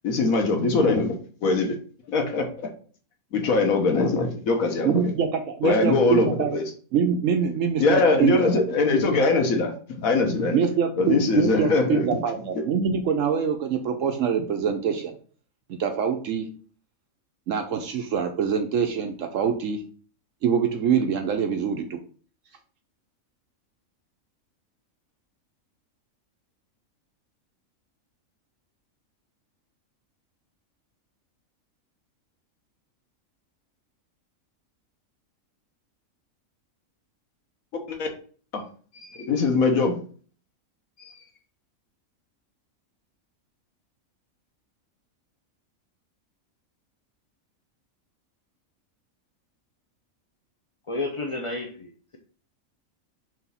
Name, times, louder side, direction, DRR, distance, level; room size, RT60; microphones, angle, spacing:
voice 1, 0.0-1.1 1.4-1.8 2.1-2.5 3.3-4.9 5.6-6.6 7.8-9.7 10.0-10.6 11.0-12.2 37.9-38.1 38.5-38.6 39.0-39.9 41.0-41.1, left 3 dB, 85° left, 1.4 m, -22 dB
voice 2, 4.8-6.6 6.9-8.5 10.5-15.2 15.7-16.5 17.5-19.8 20.4-22.0, right 7 dB, 70° right, 1.0 m, -24 dB
voice 3, 50.9-52.2, left 2 dB, 40° left, 0.4 m, -31 dB
4.9 x 3.5 x 5.5 m
omnidirectional pair, 1.5 m